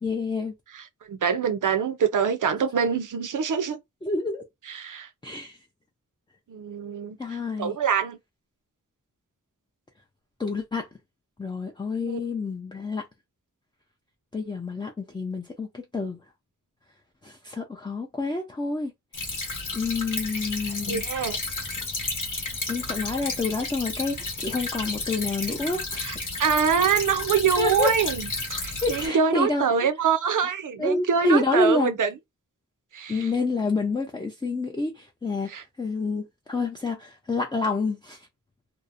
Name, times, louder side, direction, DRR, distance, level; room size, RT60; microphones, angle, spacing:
voice 1, 0.0-0.5 4.0-4.4 5.2-5.6 7.2-7.8 10.4-10.9 11.4-13.0 14.3-16.2 17.2-18.9 19.7-21.0 22.7-26.0 27.6-27.9 28.8-29.6 30.8-31.9 33.1-35.5 35.8-38.2, left 3 dB, 15° left, 0.4 m, -28 dB
voice 2, 0.7-3.8 4.7-5.1 6.5-8.2 12.1-12.2 20.9-21.4 26.0-28.3 28.6-32.1 32.9-33.3 35.5-35.6, right 7 dB, 65° right, 0.5 m, -25 dB
Stream / Trickle dribble, 19.1-29.1, left 3 dB, 70° left, 0.9 m, -32 dB
2.7 x 2.0 x 2.5 m
wide cardioid pair, 100°, 33 cm